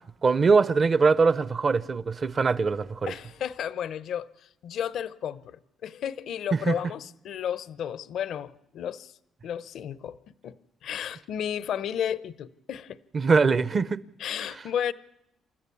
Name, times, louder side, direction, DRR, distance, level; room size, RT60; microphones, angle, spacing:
voice 1, 0.2-3.1 6.7-6.8 13.1-14.0, right 4 dB, 40° right, 0.7 m, -22 dB
voice 2, 3.1-9.2 9.4-10.2 10.4-13.0 14.2-14.9, left 9 dB, 70° left, 0.6 m, -33 dB
29.0 x 13.5 x 7.0 m
cardioid pair, 90°, 0 cm